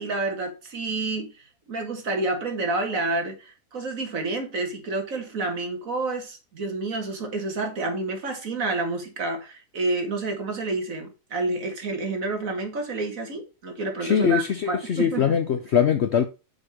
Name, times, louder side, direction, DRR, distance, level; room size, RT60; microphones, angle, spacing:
voice 1, 0.0-1.3 1.7-15.4, right 3 dB, 55° right, 2.0 m, -29 dB
voice 2, 14.0-16.3, left 8 dB, 60° left, 0.7 m, -22 dB
6.3 x 5.0 x 4.9 m
omnidirectional pair, 1.7 m